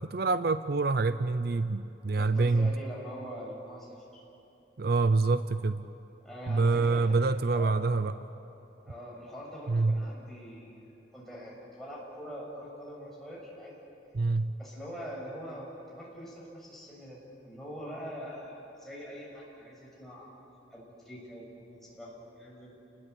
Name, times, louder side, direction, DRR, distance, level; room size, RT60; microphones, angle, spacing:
voice 1, 0.0-2.7 4.8-5.8 6.5-8.1 9.7-10.0 14.1-14.5, right 3 dB, 60° right, 12 dB, 0.6 m, -26 dB
voice 2, 2.1-4.2 6.2-7.2 7.5-7.7 8.9-10.7 11.1-13.7 14.6-17.2 17.4-20.3 20.7-22.8, equal, ahead, -5 dB, 7.0 m, -43 dB
30.0 x 20.0 x 8.4 m, 2.9 s
head